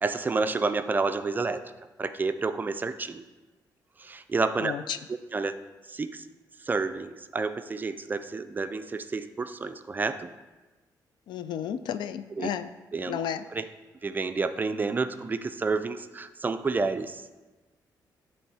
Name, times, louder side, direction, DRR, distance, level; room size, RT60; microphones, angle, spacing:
voice 1, 0.0-1.7 2.0-3.2 4.0-4.7 5.1-5.6 5.9-6.3 6.6-10.3 12.4-12.5 12.9-13.2 13.5-13.7 14.0-17.2, right 4 dB, 25° right, 10 dB, 0.3 m, -29 dB
voice 2, 4.6-5.0 11.3-12.7 13.1-13.5, left 9 dB, 85° left, 11 dB, 0.3 m, -32 dB
8.7 x 3.1 x 4.7 m, 1.2 s
cardioid pair, 110°, 8 cm